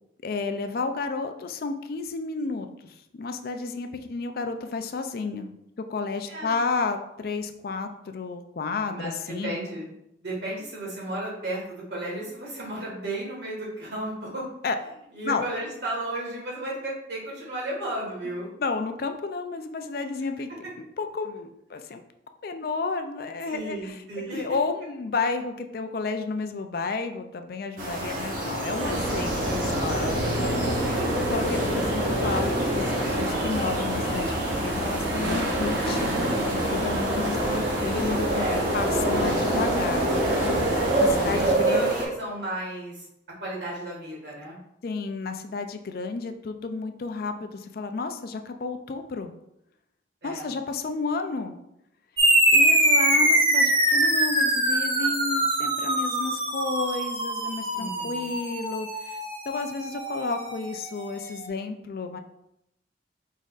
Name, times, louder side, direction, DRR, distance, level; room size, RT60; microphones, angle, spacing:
voice 1, 0.2-5.5 5.9-9.6 14.6-14.8 15.2-15.4 18.6-20.5 20.8-22.0 22.4-24.1 24.3-30.6 31.3-38.5 38.7-40.1 41.0-41.9 44.8-49.3 50.2-51.6 52.5-62.2, left 4 dB, 55° left, 7 dB, 0.4 m, -32 dB
voice 2, 8.9-9.9 10.2-14.5 15.1-18.5 23.5-24.4 29.4-30.0 30.8-31.1 38.4-38.7 41.3-43.1 43.4-44.6 50.2-50.5 57.7-58.3, right 1 dB, 70° right, -4 dB, 1.7 m, -34 dB
sound 1, 27.8-42.0, right 1 dB, 50° right, 1.1 m, -28 dB
sound 2, 28.8-41.5, equal, 85° right, 0.8 m, -29 dB
sound 3, 52.2-61.1, right 1 dB, 30° right, 0.8 m, -23 dB
4.9 x 4.1 x 2.4 m, 0.81 s
head